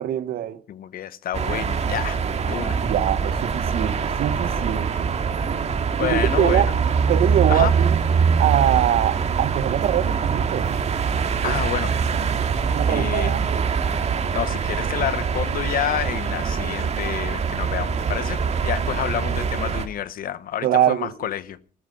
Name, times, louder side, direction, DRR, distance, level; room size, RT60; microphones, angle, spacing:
voice 1, 0.0-0.6 2.8-5.1 6.0-6.7 7.1-8.0 8.4-10.7 11.4-11.6 12.5-13.6 20.6-21.1, right 11 dB, 60° right, 1.2 m, -23 dB
voice 2, 0.7-2.8 6.0-6.7 7.5-7.7 11.4-11.9 12.9-13.3 14.3-21.6, left 11 dB, 60° left, 1.0 m, -29 dB
sound 1, 1.3-19.9, right 6 dB, 40° right, 2.2 m, -23 dB
15.0 x 13.5 x 5.4 m
cardioid pair, 110°, 17 cm